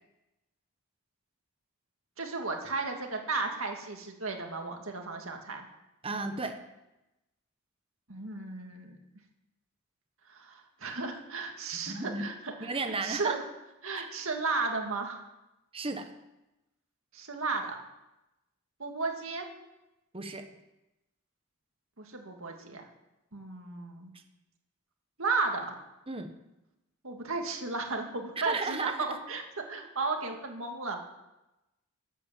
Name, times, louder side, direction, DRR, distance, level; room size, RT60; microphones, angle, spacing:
voice 1, 2.2-5.7 8.1-9.0 10.3-13.4 13.8-15.2 17.1-17.8 18.8-19.5 22.0-22.9 23.3-24.1 25.2-25.7 27.0-31.0, right 3 dB, 65° right, 3 dB, 2.2 m, -34 dB
voice 2, 6.0-6.6 11.9-12.2 12.6-13.4 14.0-14.1 15.7-16.1 20.1-20.5 26.1-26.3 28.4-29.1, right 3 dB, 25° right, 7 dB, 1.1 m, -33 dB
12.0 x 8.5 x 7.5 m, 0.96 s
head